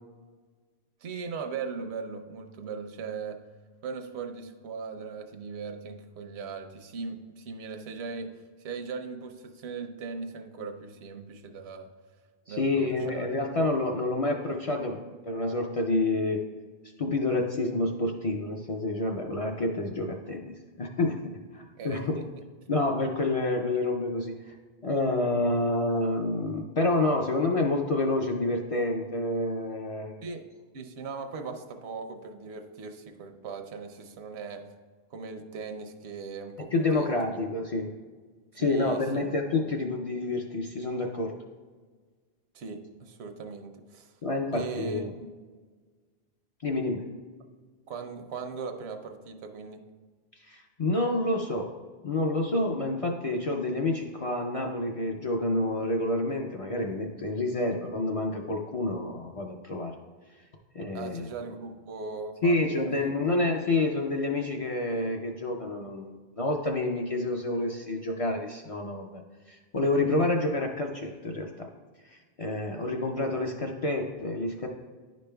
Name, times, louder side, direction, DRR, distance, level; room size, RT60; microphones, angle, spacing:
voice 1, 1.0-3.4 3.8-8.3 8.6-11.9 12.5-13.3 21.8-22.2 30.2-30.5 30.7-34.7 35.1-37.4 38.5-39.3 39.6-39.8 42.5-44.1 44.5-45.3 47.9-49.8 60.9-63.1, right 5 dB, 80° right, 6 dB, 0.9 m, -39 dB
voice 2, 12.5-15.0 15.3-16.4 17.0-22.2 22.7-24.5 24.8-30.1 36.7-37.9 38.6-41.3 44.2-45.1 46.6-47.1 50.4-51.7 52.0-59.9 60.7-61.2 62.4-69.2 69.5-71.7 72.0-74.7, left 2 dB, 50° left, 1 dB, 0.4 m, -28 dB
10.0 x 5.2 x 2.2 m, 1.4 s
omnidirectional pair, 1.1 m